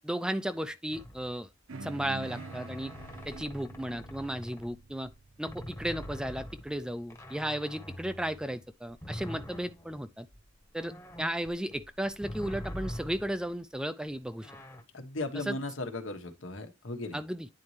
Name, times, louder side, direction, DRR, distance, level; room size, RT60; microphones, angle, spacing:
voice 1, 0.0-1.5 1.8-2.9 3.3-5.1 5.4-10.3 10.7-14.5 15.3-15.6 17.1-17.5, right 1 dB, 5° right, 0.4 m, -35 dB
sound 1, 0.9-1.5 2.2-5.1 5.5-13.6 14.4-14.8, equal, 15° left, 1.0 m, -44 dB
sound 2, 1.7-6.4, right 3 dB, 90° right, 0.9 m, -46 dB
voice 2, 14.9-17.2, left 2 dB, 80° left, 1.3 m, -37 dB
9.7 x 4.2 x 3.2 m
head